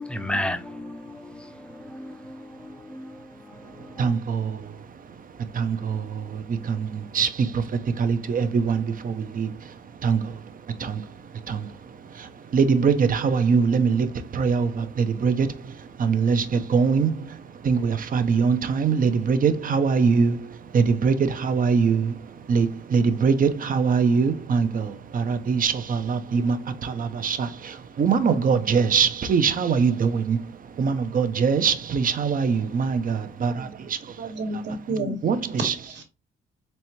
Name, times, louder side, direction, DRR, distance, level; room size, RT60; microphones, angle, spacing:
voice 1, 0.0-3.2 3.5-4.1, left 1 dB, 5° left, 0.6 m, -34 dB
voice 2, 4.0-4.6 5.5-7.6 8.0-9.5 10.0-10.3 10.8-11.0 11.5-11.7 12.5-14.1 14.3-15.5 16.0-17.1 17.6-20.4 20.7-22.1 22.5-26.6 26.8-30.4 30.8-33.7 35.2-35.4 35.6-35.7, right 5 dB, 45° right, 0.7 m, -22 dB
voice 3, 34.2-36.0, right 2 dB, 65° right, 1.4 m, -31 dB
4.2 x 3.3 x 3.0 m
cardioid pair, 90°, 20 cm